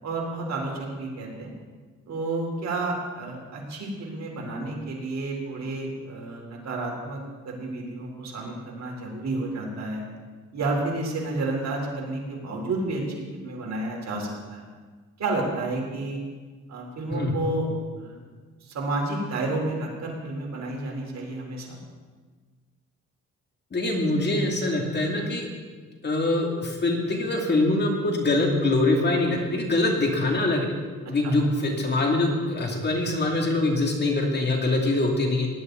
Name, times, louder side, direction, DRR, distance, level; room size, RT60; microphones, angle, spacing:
voice 1, 0.0-1.5 2.1-10.0 10.5-13.0 13.3-14.6 15.2-16.2 16.7-17.7 17.9-18.2 18.6-21.8 31.2-31.3, right 2 dB, 60° right, -1 dB, 4.0 m, -31 dB
voice 2, 23.7-25.5 26.0-30.7 31.1-35.5, left 2 dB, 35° left, 1 dB, 2.7 m, -24 dB
18.5 x 11.5 x 4.0 m, 1.4 s
cardioid pair, 90°, 30 cm